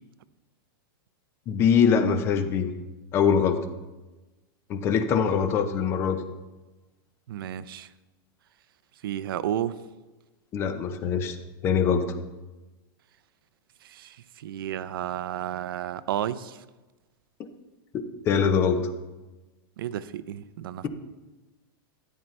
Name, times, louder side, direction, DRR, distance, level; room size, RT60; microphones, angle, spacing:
voice 1, 1.5-2.7 3.1-3.6 4.7-6.2 10.5-11.4 11.6-12.2 17.4-17.5 18.3-18.9, left 6 dB, 20° left, 9 dB, 0.7 m, -23 dB
voice 2, 7.3-7.9 9.0-9.8 13.8-16.6 19.8-20.9, right 11 dB, 70° right, 15 dB, 0.6 m, -32 dB
12.5 x 10.5 x 3.3 m, 1.1 s
supercardioid pair, 170°, 12 cm